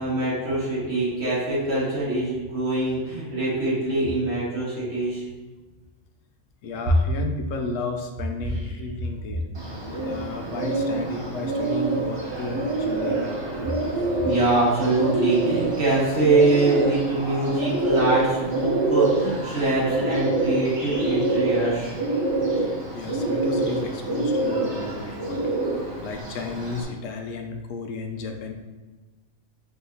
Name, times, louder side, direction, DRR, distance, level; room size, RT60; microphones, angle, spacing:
voice 1, 0.0-5.2 8.4-8.6 14.2-21.9, right 2 dB, 75° right, -9 dB, 2.1 m, -23 dB
voice 2, 6.6-9.5 9.9-13.2 22.6-25.7 26.0-28.5, left 3 dB, 90° left, 4 dB, 1.0 m, -33 dB
Bird, 9.5-26.8, right 2 dB, 25° right, 0.7 m, -26 dB
4.5 x 3.5 x 2.7 m, 1.3 s
omnidirectional pair, 1.3 m